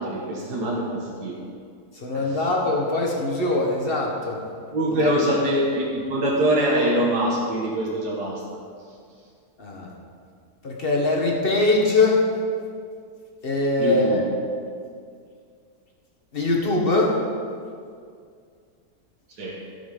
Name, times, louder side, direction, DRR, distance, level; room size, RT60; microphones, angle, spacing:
voice 1, 0.0-1.4 2.1-2.4 4.7-8.4 13.8-14.3 19.4-19.6, right 1 dB, 90° right, -4 dB, 1.9 m, -24 dB
voice 2, 1.9-4.4 4.9-5.2 9.6-9.9 10.6-12.2 13.4-14.2 16.3-17.2, left 2 dB, 35° left, -2 dB, 1.8 m, -22 dB
15.5 x 6.3 x 5.5 m, 2.2 s
omnidirectional pair, 1.7 m